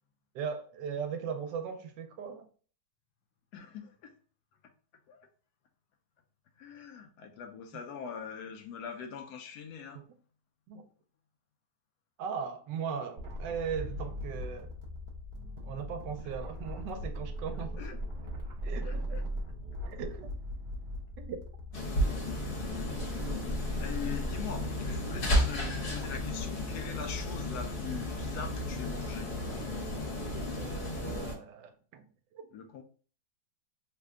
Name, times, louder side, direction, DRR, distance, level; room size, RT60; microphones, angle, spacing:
voice 1, 0.3-2.5 9.9-10.1 10.7-10.8 12.2-14.7 15.6-18.0 18.6-19.2 19.9-20.3 21.2-21.4 23.2-23.3 30.6-32.0 32.3-32.5, right 7 dB, 80° right, 1.2 m, -38 dB
voice 2, 3.5-4.1 5.1-5.2 6.6-10.0 17.8-18.0 18.8-19.2 22.4-23.1 23.8-29.3 32.5-32.8, left 6 dB, 75° left, 1.0 m, -43 dB
sound 1, 13.2-26.4, equal, 50° right, 0.5 m, -39 dB
sound 2, 21.7-31.3, left 1 dB, 50° left, 1.0 m, -33 dB
3.3 x 2.1 x 3.5 m
omnidirectional pair, 1.9 m